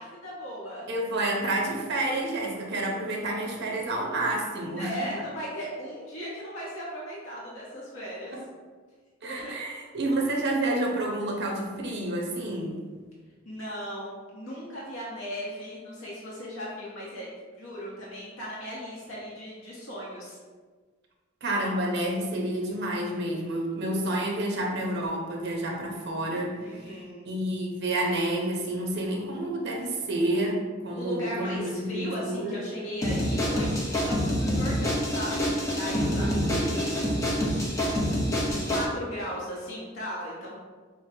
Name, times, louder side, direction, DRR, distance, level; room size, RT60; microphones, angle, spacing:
voice 1, 0.0-0.9 4.6-8.3 9.2-9.5 13.4-17.3 17.6-20.4 26.6-27.2 31.0-35.4 35.7-37.4 38.4-40.6, equal, 70° left, -5 dB, 0.8 m, -37 dB
voice 2, 0.9-4.9 8.3-8.4 9.2-12.8 21.4-27.0 27.2-32.6 36.2-36.9, right 1 dB, 55° right, -1 dB, 0.8 m, -29 dB
sound 1, 33.0-38.9, equal, 15° left, 0.7 m, -27 dB
6.1 x 2.1 x 2.7 m, 1.5 s
head